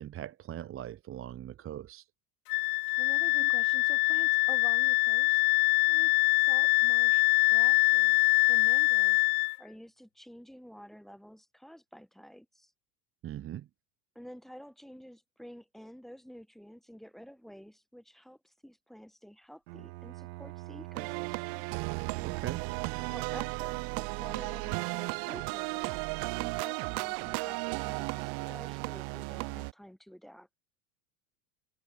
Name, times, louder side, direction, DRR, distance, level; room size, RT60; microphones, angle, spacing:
voice 1, 0.0-2.1 3.4-3.5 13.2-13.7 22.2-22.6, right 11 dB, 25° right, 1.5 m, -41 dB
Wind instrument woodwind instrument, 2.5-9.5, left 28 dB, 65° left, 0.9 m, -24 dB
voice 2, 3.0-5.4 5.9-7.2 7.5-9.2 9.6-12.7 14.1-21.7 23.1-30.5, equal, ahead, 5.7 m, -50 dB
Bowed string instrument, 19.7-23.6, right 21 dB, 80° right, 6.7 m, -45 dB
sound 1, 21.0-29.7, right 34 dB, 50° right, 1.2 m, -35 dB
supercardioid pair, 155°, 49 cm